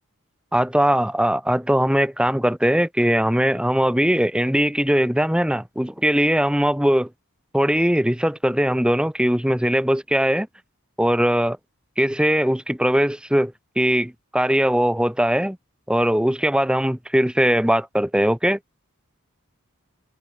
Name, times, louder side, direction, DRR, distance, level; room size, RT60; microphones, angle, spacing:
voice 1, 0.5-7.1 7.5-10.5 11.0-11.6 12.0-15.6 15.9-18.6, equal, 5° right, 1.5 m, -20 dB
head